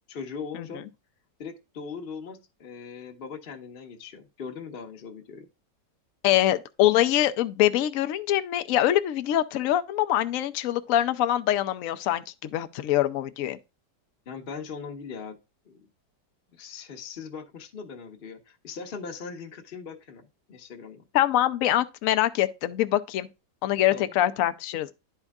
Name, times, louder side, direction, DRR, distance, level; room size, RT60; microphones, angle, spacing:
voice 1, 0.1-0.9 1.4-5.5 14.3-15.4 15.7-15.9 16.5-21.0 23.9-24.1, left 5 dB, 40° left, 1.0 m, -40 dB
voice 2, 6.2-13.6 21.1-23.3 23.6-24.9, left 13 dB, 65° left, 0.9 m, -24 dB
11.5 x 4.5 x 2.3 m
omnidirectional pair, 1.9 m